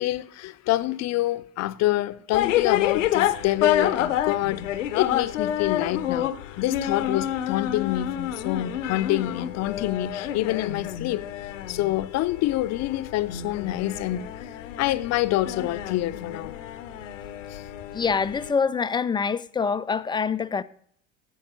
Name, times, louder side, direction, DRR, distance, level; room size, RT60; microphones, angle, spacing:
voice 1, 0.0-4.6 4.9-11.3 11.7-14.3 14.8-16.5 17.5-17.6, left 15 dB, 45° left, 0.7 m, -27 dB
sound 1, 2.3-18.5, left 11 dB, 75° left, 0.8 m, -29 dB
voice 2, 17.9-20.6, left 5 dB, 15° left, 0.4 m, -25 dB
9.3 x 8.6 x 7.5 m
figure-of-eight pair, 65°, 38 cm